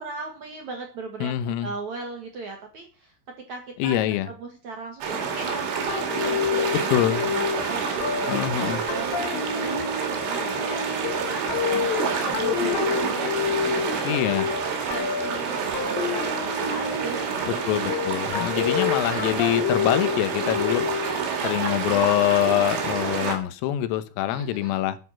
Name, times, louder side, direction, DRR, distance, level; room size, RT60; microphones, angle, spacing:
voice 1, 0.0-1.4 1.6-3.1 3.5-10.8 11.1-14.4 14.9-17.6 21.0-21.9 24.3-24.8, right 3 dB, 50° right, 2.3 m, -37 dB
voice 2, 1.2-1.7 3.8-4.3 6.9-7.3 8.3-8.8 14.1-14.5 17.7-20.9 21.4-25.0, left 13 dB, 85° left, 3.7 m, -24 dB
sound 1, 5.0-23.4, right 5 dB, 70° right, 5.1 m, -28 dB
sound 2, 5.9-21.2, left 7 dB, 65° left, 3.5 m, -29 dB
10.5 x 9.5 x 5.9 m
omnidirectional pair, 5.8 m